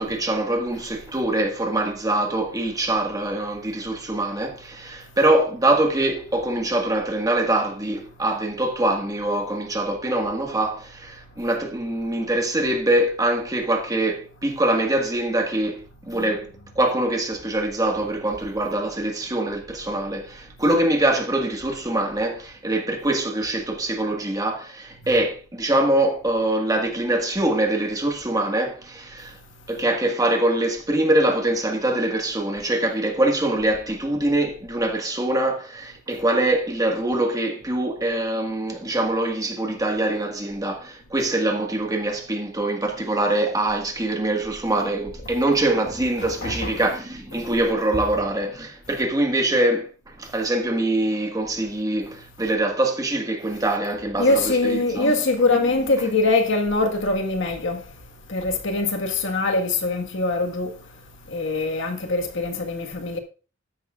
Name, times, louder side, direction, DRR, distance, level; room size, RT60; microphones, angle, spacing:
voice 1, 0.0-16.5 16.7-29.4 29.7-49.9 50.2-55.1, right 1 dB, 20° right, 1.6 m, -24 dB
voice 2, 46.2-46.9 54.2-57.8 58.3-60.7 61.3-63.2, left 2 dB, 65° left, 1.6 m, -23 dB
13.5 x 10.5 x 2.4 m
head